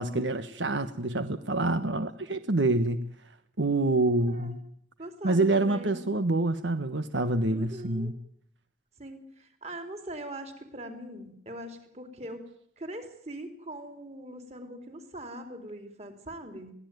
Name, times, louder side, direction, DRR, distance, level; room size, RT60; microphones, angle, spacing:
voice 1, 0.0-3.1 3.6-4.6 5.2-8.1, right 2 dB, 85° right, 10 dB, 1.3 m, -27 dB
voice 2, 4.2-4.6 5.0-6.2 7.5-8.1 9.0-12.5 12.8-16.7, right 1 dB, 35° right, 6 dB, 4.0 m, -41 dB
22.5 x 17.0 x 9.4 m, 0.66 s
head